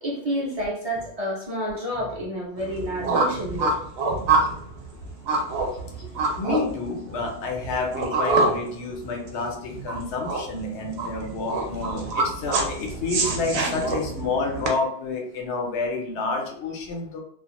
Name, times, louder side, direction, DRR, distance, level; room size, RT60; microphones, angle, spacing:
voice 1, 0.0-3.7 6.0-6.1 12.8-12.9, equal, 45° right, -4 dB, 0.5 m, -29 dB
Speech synthesizer, 0.9-1.1 1.5-1.6 1.9-2.3 2.7-2.8 3.3-3.5 3.9-4.0 4.4-4.7 5.7-6.0 7.0-7.3 7.6-7.7 8.3-8.6 8.9-9.2 9.6-9.9 10.3-10.4 10.8-11.0 11.9-12.2 12.5-12.7 13.1-13.4 13.8-13.9, equal, 35° left, 0.5 m, -44 dB
sound 1, 2.6-14.7, right 3 dB, 70° right, 0.8 m, -26 dB
voice 2, 5.5-5.9 6.4-17.2, left 3 dB, 80° left, 2 dB, 0.9 m, -29 dB
2.4 x 2.1 x 2.8 m, 0.62 s
omnidirectional pair, 1.1 m